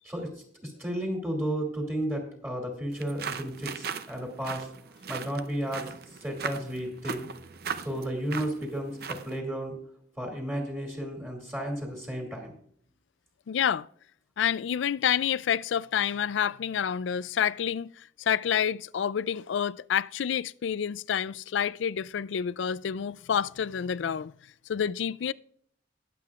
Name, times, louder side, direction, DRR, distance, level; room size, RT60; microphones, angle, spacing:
voice 1, 0.6-4.7 5.1-5.9 6.2-7.3 7.8-9.8 10.2-12.5, right 1 dB, 15° right, 2.6 m, -33 dB
sound 1, 2.9-9.4, right 6 dB, 55° right, 0.6 m, -38 dB
voice 2, 13.5-13.9 14.4-17.9 18.2-24.3 24.7-25.3, left 8 dB, 80° left, 0.4 m, -28 dB
20.5 x 7.6 x 2.4 m
head